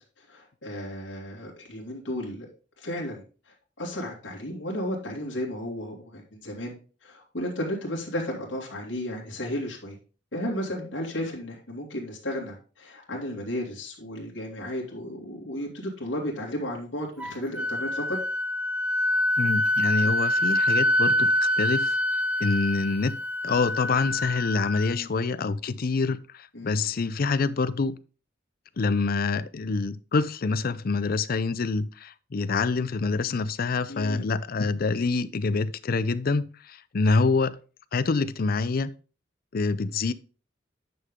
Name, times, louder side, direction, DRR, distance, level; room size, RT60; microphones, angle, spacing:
voice 1, 0.3-2.5 2.8-3.2 3.8-6.7 7.0-10.0 10.3-18.2 24.9-25.1 26.5-26.9 33.9-34.2, equal, 75° left, 2.5 m, -33 dB
Wind instrument woodwind instrument, 17.2-24.9, left 1 dB, 5° right, 0.5 m, -25 dB
voice 2, 19.4-22.0 22.4-23.2 23.4-28.0 28.8-37.5 37.9-38.9 39.5-40.1, left 4 dB, 50° left, 0.5 m, -26 dB
9.5 x 5.7 x 3.7 m
head